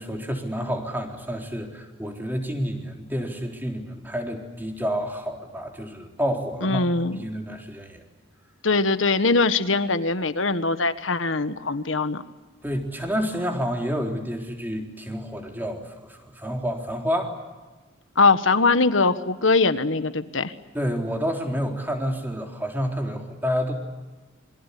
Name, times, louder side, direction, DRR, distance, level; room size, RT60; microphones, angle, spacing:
voice 1, 0.0-6.8 7.2-8.0 12.6-17.4 20.7-23.7, equal, 10° right, 2 dB, 4.0 m, -29 dB
voice 2, 6.6-7.2 8.6-12.2 18.1-20.5, left 3 dB, 75° left, 11 dB, 1.6 m, -21 dB
27.5 x 24.0 x 8.5 m, 1.3 s
head